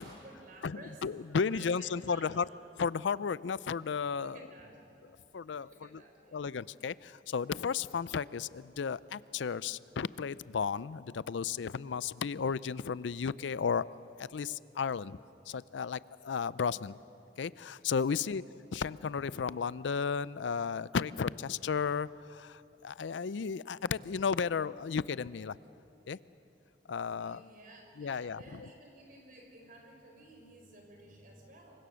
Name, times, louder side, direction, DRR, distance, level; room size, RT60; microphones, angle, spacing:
voice 1, 0.0-1.0 1.5-2.4 4.2-4.8 5.5-6.4 18.1-18.4 27.2-31.9, right 2 dB, 50° right, 2 dB, 4.3 m, -54 dB
voice 2, 0.6-2.5 2.8-4.4 5.3-6.0 6.3-13.8 14.2-15.2 15.5-16.9 17.4-18.4 18.7-25.6 26.1-26.2 26.9-27.4 28.0-28.7, left 6 dB, 85° left, 19 dB, 0.5 m, -34 dB
27.5 x 23.5 x 6.4 m, 2.9 s
head